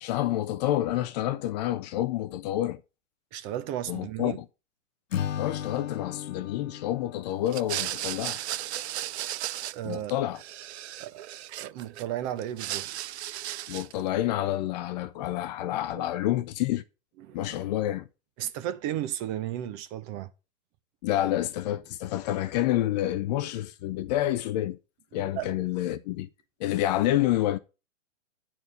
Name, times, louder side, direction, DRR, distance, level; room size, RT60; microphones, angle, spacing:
voice 1, 0.0-2.8 3.9-4.5 5.4-8.4 9.8-10.4 13.7-16.8 17.3-18.1 21.0-24.8 25.1-26.3 26.6-27.6, left 13 dB, 35° left, 0.6 m, -28 dB
voice 2, 3.3-4.4 9.7-10.1 11.0-11.3 11.6-12.9 16.0-16.1 17.2-17.5 18.4-20.3 25.4-25.5, right 11 dB, 30° right, 0.8 m, -34 dB
Acoustic guitar / Strum, 5.1-8.4, left 9 dB, 80° left, 0.7 m, -36 dB
sound 1, 7.5-10.1 10.4-12.0 12.4-14.0, right 13 dB, 60° right, 0.5 m, -35 dB
9.6 x 4.4 x 6.7 m
hypercardioid pair, 120°, 39 cm